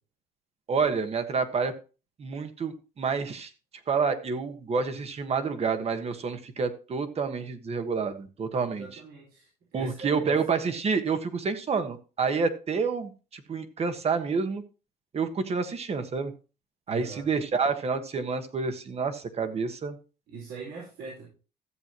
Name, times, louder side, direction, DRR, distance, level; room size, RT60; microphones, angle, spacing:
voice 1, 0.7-1.7 2.2-3.5 3.9-9.0 9.7-14.6 15.1-16.3 16.9-20.0, right 5 dB, 35° right, 9 dB, 1.5 m, -28 dB
voice 2, 8.5-10.4 16.9-17.3 20.3-21.3, right 4 dB, 80° right, -4 dB, 5.0 m, -42 dB
14.5 x 7.9 x 3.0 m, 0.33 s
cardioid pair, 110°, 17 cm